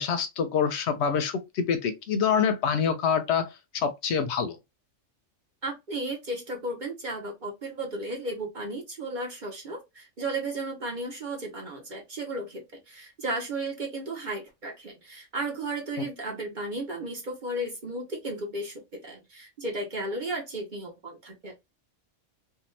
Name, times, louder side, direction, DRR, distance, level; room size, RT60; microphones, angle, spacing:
voice 1, 0.0-4.6, left 7 dB, 70° left, 0.8 m, -26 dB
voice 2, 5.6-21.5, right 2 dB, 45° right, 0.8 m, -34 dB
2.7 x 2.2 x 3.1 m
omnidirectional pair, 1.3 m